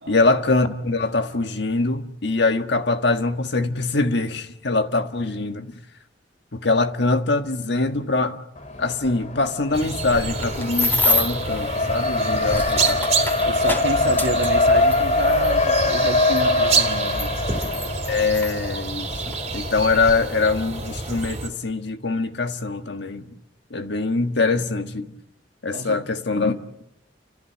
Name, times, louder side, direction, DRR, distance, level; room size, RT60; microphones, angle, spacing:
voice 1, 0.1-5.7 6.5-8.4 8.8-13.1 18.1-23.3 23.7-25.1 25.6-26.6, left 3 dB, 65° left, 1.5 m, -23 dB
Race car auto racing, 8.6-21.2, left 2 dB, 45° left, 2.8 m, -24 dB
sound 1, 9.7-21.5, right 4 dB, 35° right, 2.9 m, -28 dB
sound 2, 10.1-11.5 12.2-15.5 16.4-16.5 17.1-18.5 19.3-19.5 19.8-20.1, left 2 dB, 10° left, 3.2 m, -27 dB
voice 2, 13.4-17.4 25.7-26.0, right 2 dB, 75° right, 1.9 m, -28 dB
29.5 x 14.5 x 8.6 m
head